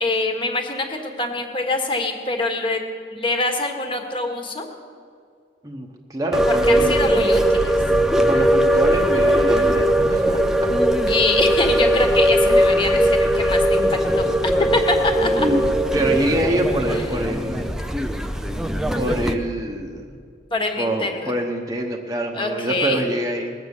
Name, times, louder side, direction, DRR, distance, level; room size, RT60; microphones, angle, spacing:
voice 1, 0.0-2.8 3.1-4.7 6.6-7.7 11.1-14.3 14.7-15.5 16.9-17.2 20.5-21.3 22.3-23.1, left 2 dB, 25° left, 3 dB, 1.5 m, -24 dB
voice 2, 5.6-6.9 8.2-10.7 15.4-15.6 15.9-17.7 18.9-20.1 20.8-23.5, right 1 dB, 20° right, 0 dB, 1.1 m, -25 dB
sound 1, 6.3-19.3, right 1 dB, 5° right, 0.5 m, -19 dB
20.0 x 8.1 x 7.2 m, 2.2 s
head